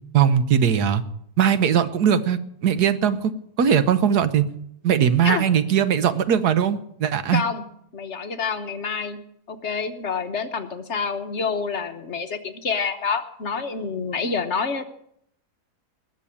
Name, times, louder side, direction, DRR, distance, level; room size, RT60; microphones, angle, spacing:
voice 1, 0.1-1.0 1.4-3.3 3.6-4.4 4.8-7.4, right 8 dB, 90° right, 12 dB, 1.5 m, -20 dB
voice 2, 7.3-7.6 7.9-9.2 9.5-14.8, left 5 dB, 50° left, 8 dB, 1.2 m, -27 dB
20.0 x 6.9 x 8.6 m, 0.71 s
omnidirectional pair, 1.7 m